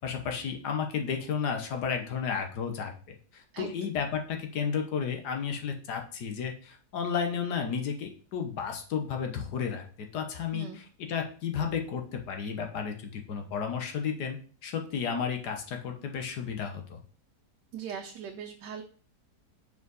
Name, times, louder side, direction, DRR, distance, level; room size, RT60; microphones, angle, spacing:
voice 1, 0.0-17.0, left 6 dB, 75° left, 4 dB, 1.5 m, -33 dB
voice 2, 17.7-18.8, right 7 dB, 85° right, 3 dB, 1.3 m, -40 dB
5.5 x 4.7 x 3.9 m, 0.42 s
omnidirectional pair, 1.8 m